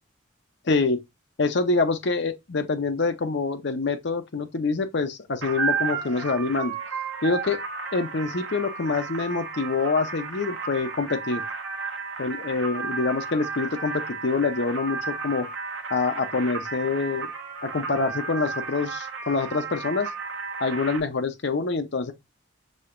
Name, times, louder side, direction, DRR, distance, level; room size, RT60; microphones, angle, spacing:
voice 1, 0.7-1.0 1.4-6.7 7.2-7.6 7.9-11.4 12.2-15.5 15.9-17.3 17.6-20.1 20.6-22.1, left 4 dB, 60° left, 0.7 m, -26 dB
sound 1, 5.4-21.0, right 5 dB, 70° right, 1.1 m, -33 dB
6.4 x 2.8 x 2.5 m
head